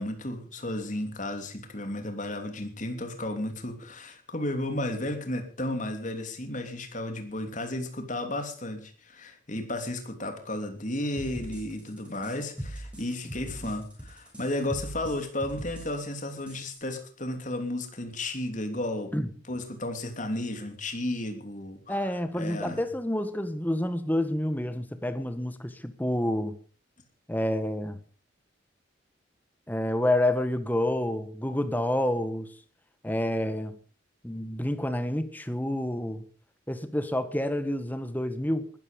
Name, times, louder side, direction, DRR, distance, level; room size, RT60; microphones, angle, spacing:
voice 1, 0.0-19.1 19.5-22.0 22.4-22.8, left 1 dB, 40° left, 6 dB, 3.1 m, -33 dB
sound 1, 11.2-16.8, right 1 dB, 5° right, 7.5 m, -40 dB
voice 2, 21.9-26.6 27.3-28.0 29.7-32.5 33.0-33.8 34.2-36.2 36.7-38.7, left 1 dB, 10° left, 10 dB, 1.5 m, -28 dB
20.0 x 13.5 x 5.3 m, 0.41 s
head